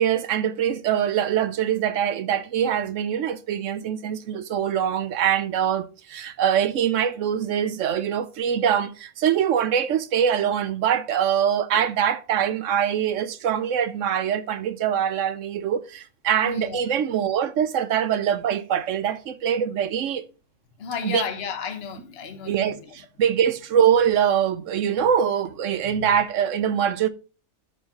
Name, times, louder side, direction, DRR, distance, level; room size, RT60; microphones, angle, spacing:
voice 1, 0.0-20.2 21.0-21.2 22.5-27.1, right 9 dB, 70° right, 0.9 m, -23 dB
voice 2, 16.4-16.8 20.8-22.9 25.8-26.2, left 6 dB, 50° left, 1.2 m, -33 dB
12.5 x 4.6 x 2.8 m
omnidirectional pair, 1.4 m